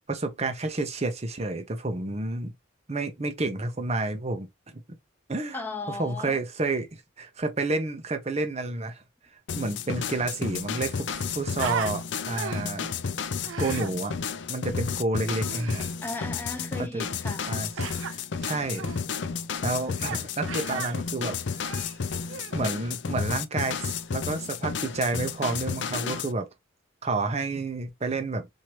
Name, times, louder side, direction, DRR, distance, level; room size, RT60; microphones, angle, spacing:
voice 1, 0.1-2.5 2.9-4.5 4.7-4.8 5.3-5.6 5.9-6.9 7.2-9.0 9.6-12.9 13.6-14.1 14.5-15.8 16.8-17.0 17.5-17.7 18.0-18.9 19.6-21.4 22.1-22.2 22.5-26.5 27.0-28.5, right 2 dB, 35° right, 0.7 m, -30 dB
voice 2, 5.5-6.4 16.0-17.5, left 2 dB, 10° left, 0.9 m, -36 dB
sound 1, 9.5-26.3, left 6 dB, 65° left, 0.5 m, -32 dB
Human voice, 10.0-10.1 10.3-11.9 12.3-12.8 13.4-13.9 15.4-15.9 17.8-18.1 18.7-19.0 20.0-20.2 20.5-20.9 21.5-22.6, right 7 dB, 90° right, 0.5 m, -36 dB
4.6 x 2.7 x 2.9 m
head